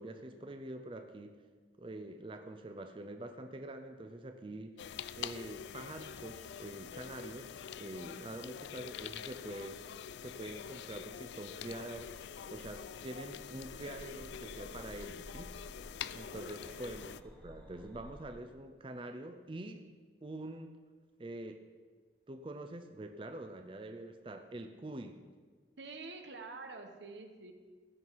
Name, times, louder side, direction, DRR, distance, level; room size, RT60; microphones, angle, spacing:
voice 1, 0.0-1.4 1.8-4.8 5.1-9.8 10.2-15.5 16.1-17.1 17.4-19.8 20.2-20.7 21.2-21.6 22.3-25.2, right 1 dB, 30° right, 7 dB, 0.5 m, -45 dB
sound 1, 4.8-17.2, left 8 dB, 80° left, 0.3 m, -46 dB
voice 2, 8.1-8.6 16.3-16.8 25.8-27.5, right 3 dB, 90° right, 6 dB, 1.1 m, -48 dB
sound 2, 11.5-18.3, equal, 5° left, 1.2 m, -55 dB
16.0 x 5.8 x 4.7 m, 1.5 s
head